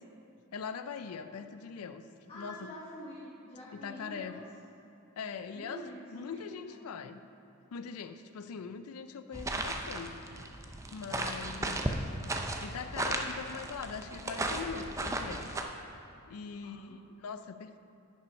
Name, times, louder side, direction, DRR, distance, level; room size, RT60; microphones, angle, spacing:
voice 1, 0.5-2.1 2.3-2.7 3.7-4.4 5.2-5.8 6.1-7.2 7.7-10.2 10.9-11.8 12.6-15.5 16.3-17.8, left 6 dB, 90° left, 10 dB, 0.4 m, -41 dB
voice 2, 2.3-4.5 5.5-7.0 16.5-17.0, equal, 25° left, -8 dB, 1.1 m, -48 dB
sound 1, 9.3-15.6, right 2 dB, 15° right, 0.5 m, -35 dB
10.0 x 5.5 x 5.3 m, 2.7 s
head